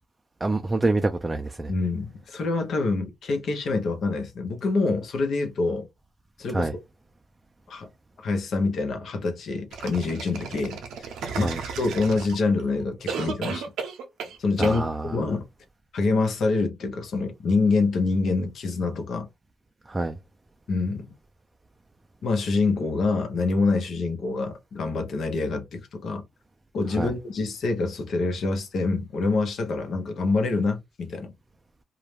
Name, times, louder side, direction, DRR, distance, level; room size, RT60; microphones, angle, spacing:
voice 1, 0.4-1.7 6.5-6.7 11.4-11.6 14.6-15.1 19.9-20.2 27.0-27.1, right 2 dB, 20° right, 0.3 m, -26 dB
voice 2, 1.7-5.9 6.4-6.7 7.7-7.9 8.2-11.1 11.3-13.7 14.4-15.5 15.9-19.3 20.7-21.1 22.2-26.2 26.7-31.3, left 3 dB, 70° left, 0.7 m, -26 dB
sound 1, 9.7-12.6 13.1-14.4 14.6-14.8, right 6 dB, 85° right, 0.6 m, -34 dB
2.4 x 2.1 x 3.1 m
cardioid pair, 75°, 0 cm